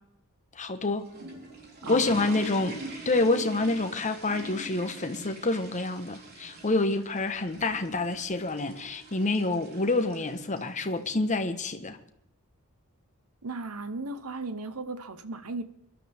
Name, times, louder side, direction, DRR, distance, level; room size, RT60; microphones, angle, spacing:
voice 1, 0.6-1.0 1.9-2.8 3.0-12.0, left 2 dB, 35° left, 1.2 m, -27 dB
sound 1, 0.9-11.1, right 2 dB, 45° right, 3.7 m, -44 dB
voice 2, 1.8-2.5 13.4-15.6, right 3 dB, 75° right, 1.0 m, -37 dB
22.5 x 12.0 x 3.6 m
head